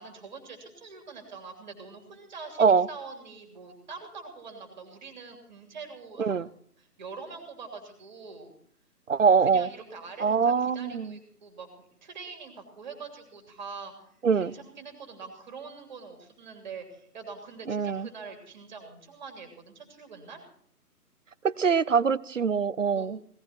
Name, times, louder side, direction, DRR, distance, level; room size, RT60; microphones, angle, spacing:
voice 1, 0.0-6.5 6.8-8.5 9.4-20.4 22.9-23.1, right 4 dB, 30° right, 3.0 m, -44 dB
voice 2, 9.1-9.7 10.2-11.1 14.2-14.5 17.7-18.1 21.4-23.2, right 6 dB, 55° right, 0.6 m, -23 dB
17.5 x 15.0 x 4.5 m
figure-of-eight pair, 150°, 47 cm